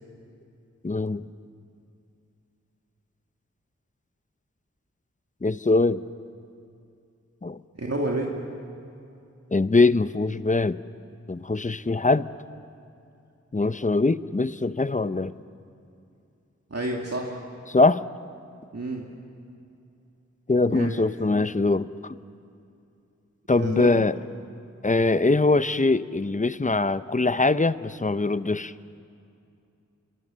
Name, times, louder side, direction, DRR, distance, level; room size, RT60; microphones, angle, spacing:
voice 1, 0.8-1.2 5.4-6.0 7.4-7.6 9.5-10.8 11.3-12.3 13.5-15.3 17.7-18.1 20.5-22.2 23.5-24.2 24.8-28.7, left 3 dB, 25° left, 14 dB, 0.6 m, -22 dB
voice 2, 7.8-8.4 16.7-17.4 18.7-19.0 20.7-21.0 23.6-24.1, right 2 dB, 55° right, -1 dB, 2.1 m, -29 dB
26.5 x 22.0 x 7.4 m, 2.6 s
wide cardioid pair, 50°, 30 cm